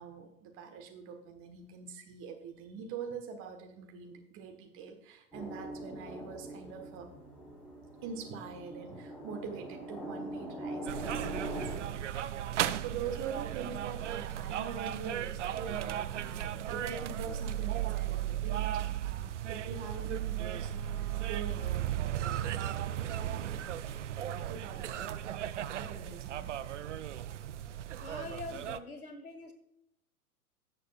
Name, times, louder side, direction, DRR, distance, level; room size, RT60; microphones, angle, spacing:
voice 1, 0.0-7.1 8.0-11.9 12.8-22.6 23.3-23.6 24.5-25.1 25.8-26.5, right 6 dB, 30° right, 4 dB, 1.5 m, -44 dB
sound 1, 5.3-11.8, right 1 dB, ahead, 4.0 m, -42 dB
sound 2, 10.9-28.8, right 11 dB, 55° right, 0.6 m, -36 dB
Bowed string instrument, 20.3-25.0, right 3 dB, 75° right, 3.9 m, -58 dB
voice 2, 28.0-29.5, left 3 dB, 70° left, 7 dB, 1.6 m, -44 dB
16.5 x 6.7 x 2.5 m, 0.82 s
figure-of-eight pair, 100°, 44 cm